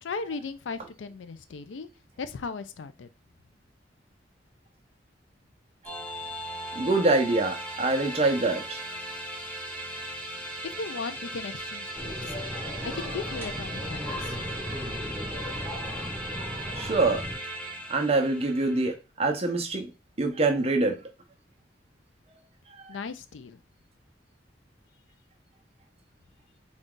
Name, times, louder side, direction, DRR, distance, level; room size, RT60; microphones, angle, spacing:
voice 1, 0.0-1.9 2.2-3.1 10.6-12.3 12.8-14.4 22.9-23.6, left 4 dB, 85° left, 12 dB, 0.4 m, -37 dB
sound 1, 5.8-18.9, right 1 dB, 5° left, 0.6 m, -38 dB
voice 2, 6.7-8.8 16.6-17.2 17.9-19.9 20.2-21.0 22.8-22.9, right 3 dB, 35° right, 3 dB, 0.7 m, -25 dB
sound 2, 11.9-17.4, equal, 15° right, 0.9 m, -36 dB
3.9 x 2.4 x 3.7 m, 0.30 s
head